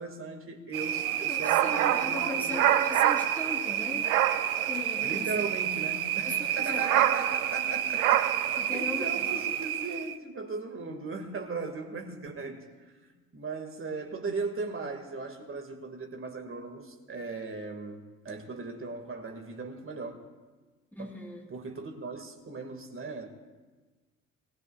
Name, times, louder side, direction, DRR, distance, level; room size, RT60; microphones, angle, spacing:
voice 1, 0.0-2.6 5.0-12.7 13.0-20.2 21.0-21.2 21.5-23.3, right 3 dB, 30° right, 2.1 m, -38 dB
sound 1, 0.7-10.2, right 11 dB, 75° right, 0.6 m, -27 dB
voice 2, 1.3-4.1 4.7-5.5 6.3-6.9 8.6-9.3 20.9-21.4, left 2 dB, 5° left, 3.8 m, -38 dB
25.5 x 20.0 x 2.4 m
figure-of-eight pair, 50°, 43 cm